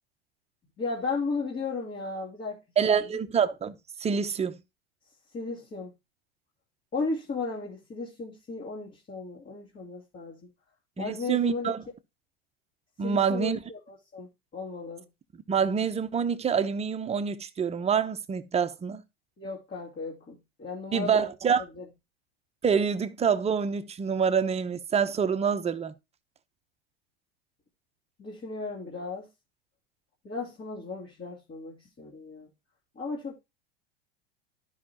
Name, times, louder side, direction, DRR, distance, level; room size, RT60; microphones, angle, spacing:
voice 1, 0.8-2.6 3.1-3.2 5.3-5.9 6.9-10.5 11.0-11.7 13.0-15.0 19.4-21.3 21.8-21.9 28.2-29.3 30.2-32.5 33.0-33.4, left 3 dB, 30° left, 2.8 m, -35 dB
voice 2, 2.8-4.6 11.0-11.8 13.0-13.6 15.5-19.0 20.9-21.6 22.6-25.9, right 6 dB, 20° right, 0.8 m, -26 dB
12.0 x 5.8 x 2.9 m
hypercardioid pair, 100°, 31 cm